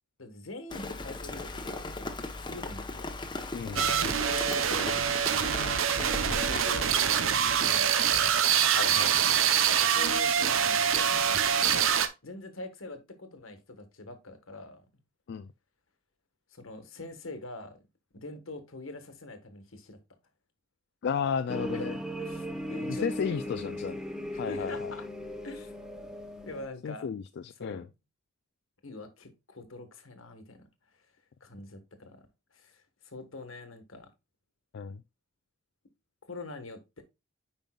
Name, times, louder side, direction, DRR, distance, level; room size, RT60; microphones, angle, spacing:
voice 1, 0.2-2.1 2.3-3.2 3.7-5.0 5.9-8.2 9.8-11.9 12.2-14.9 16.5-17.8 18.1-20.0 21.7-21.9 22.2-23.6 24.3-25.1 25.4-25.7 26.4-27.1 27.6-27.9 28.8-30.7 31.4-32.2 32.5-34.1 36.2-37.0, left 2 dB, 80° left, 1.5 m, -44 dB
Rain, 0.7-6.9, left 2 dB, 25° left, 0.9 m, -38 dB
voice 2, 3.5-3.9 8.8-9.1 15.3-15.5 21.0-22.0 22.9-24.0 24.4-24.9 26.8-27.9 34.7-35.0, left 6 dB, 55° left, 0.3 m, -33 dB
sound 1, 3.8-12.1, right 8 dB, 75° right, 0.7 m, -25 dB
sound 2, 21.5-26.7, equal, 5° right, 0.9 m, -37 dB
9.2 x 5.3 x 2.3 m
head